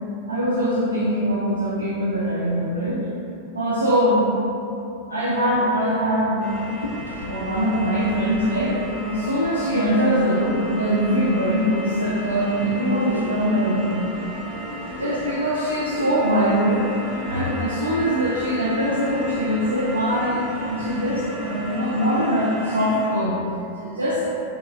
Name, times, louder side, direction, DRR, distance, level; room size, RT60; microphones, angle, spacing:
voice 1, 0.3-3.1 3.5-4.3 5.1-6.5 7.3-14.4 15.0-16.9 17.3-20.4 20.6-23.4 23.8-24.2, equal, 75° right, -6 dB, 0.4 m, -22 dB
sound 1, 6.4-23.1, equal, 15° right, 1.3 m, -34 dB
Wooden Blade, 6.5-21.4, equal, 85° left, 0.3 m, -41 dB
3.8 x 3.7 x 2.2 m, 2.8 s
figure-of-eight pair, 90°, 0 cm